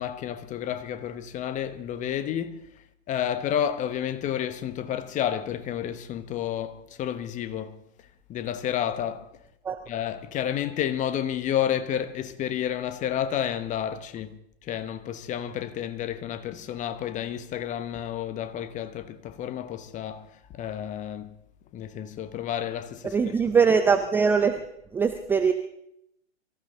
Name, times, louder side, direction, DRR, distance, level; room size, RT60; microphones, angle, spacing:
voice 1, 0.0-2.7 3.1-7.8 8.3-9.3 9.9-21.3 21.7-23.3, left 10 dB, 20° left, 1.1 m, -30 dB
voice 2, 23.0-24.5 24.9-25.5, right 5 dB, 5° right, 0.5 m, -21 dB
24.0 x 14.5 x 3.9 m
figure-of-eight pair, 110°, 35 cm